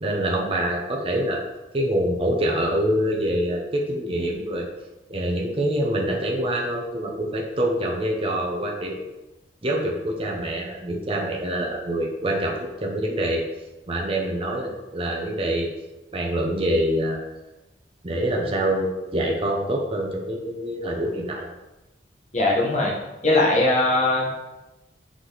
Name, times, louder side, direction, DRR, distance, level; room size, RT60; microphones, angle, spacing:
voice 1, 0.0-1.4 1.7-4.7 5.1-9.0 9.6-13.4 13.9-15.7 16.1-17.2 18.0-21.5, right 1 dB, 30° right, 0 dB, 0.9 m, -25 dB
voice 2, 22.3-22.9 23.2-24.5, left 2 dB, 40° left, -3 dB, 1.5 m, -20 dB
5.9 x 4.9 x 4.0 m, 1.0 s
head